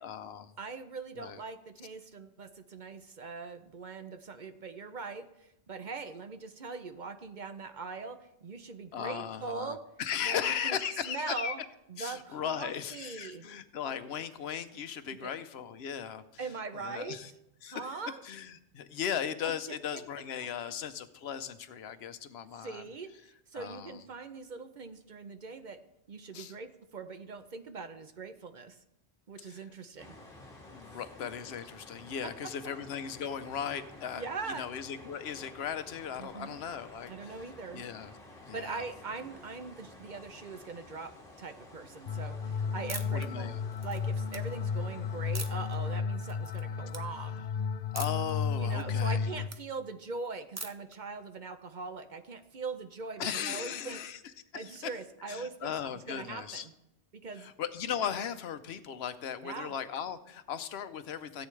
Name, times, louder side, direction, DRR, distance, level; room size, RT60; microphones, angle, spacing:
voice 1, 0.0-0.5 1.1-1.4 8.9-11.5 12.0-17.3 17.6-22.8 23.5-24.0 26.3-26.5 29.4-29.6 30.7-34.3 34.6-37.5 37.7-38.1 38.4-38.8 43.1-43.6 47.9-49.3 53.2-54.2 54.5-54.9 55.2-56.7 57.4-61.5, left 8 dB, 70° left, 11 dB, 0.9 m, -37 dB
voice 2, 0.6-9.8 10.2-10.8 11.1-11.6 11.9-13.5 15.2-15.3 16.4-17.2 17.7-18.2 19.4-20.0 22.5-25.8 26.1-28.8 29.3-30.2 34.2-34.7 36.2-36.6 37.1-37.8 38.5-41.1 41.4-43.5 43.8-47.4 48.6-54.0 54.5-55.7 56.1-56.7 57.1-57.5 59.4-59.7, right 4 dB, 50° right, 9 dB, 0.7 m, -41 dB
sound 1, 30.0-46.0, left 2 dB, 35° left, 1.9 m, -52 dB
sound 2, 42.1-49.5, left 5 dB, 55° left, 0.5 m, -33 dB
sound 3, 42.9-43.3 43.7-44.4 45.3-45.7 46.2-46.6 46.9-47.0 47.9-48.3 48.7-49.6 50.6-50.9, right 3 dB, 20° right, 0.4 m, -41 dB
17.0 x 8.4 x 3.2 m, 0.84 s
omnidirectional pair, 1.1 m